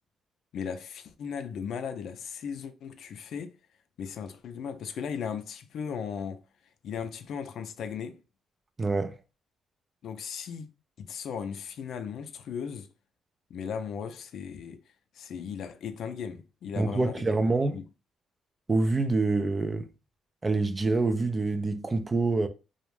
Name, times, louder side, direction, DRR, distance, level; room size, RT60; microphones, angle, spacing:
voice 1, 0.5-3.5 4.0-6.4 6.8-8.2 10.0-10.7 11.0-12.9 13.5-14.8 15.1-17.2 17.7-17.8, left 7 dB, 70° left, 0.4 m, -37 dB
voice 2, 8.8-9.1 16.8-17.8 18.7-19.9 20.4-22.5, right 3 dB, 25° right, 0.3 m, -26 dB
2.3 x 2.1 x 3.0 m
cardioid pair, 90°, 0 cm